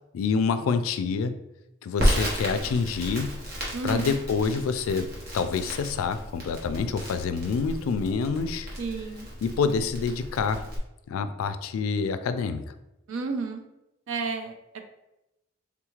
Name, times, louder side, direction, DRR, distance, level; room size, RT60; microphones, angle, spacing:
voice 1, 0.1-1.4 1.8-3.4 3.8-5.1 5.3-8.7 9.4-10.6 11.1-12.7, left 5 dB, 90° left, 10 dB, 0.3 m, -27 dB
Crackle, 2.0-10.8, equal, 50° right, 1.0 m, -32 dB
voice 2, 3.7-4.2 8.8-9.3 13.1-13.6 14.1-14.8, right 4 dB, 75° right, 5 dB, 0.5 m, -32 dB
3.6 x 2.3 x 3.0 m, 0.91 s
head